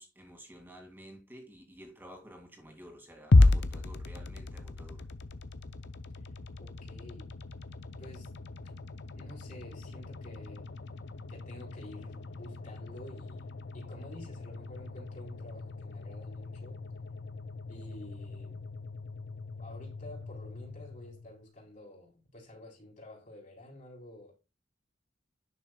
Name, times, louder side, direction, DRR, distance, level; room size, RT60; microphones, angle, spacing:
voice 1, 0.0-5.0, equal, 10° right, 2.2 m, -51 dB
sound 1, 3.3-21.5, left 2 dB, 65° left, 0.6 m, -33 dB
voice 2, 6.6-7.3 8.0-8.3 9.2-10.7 11.3-13.5 13.7-16.8 17.7-18.7 19.6-24.3, left 1 dB, 45° left, 3.9 m, -50 dB
10.5 x 6.2 x 2.3 m
head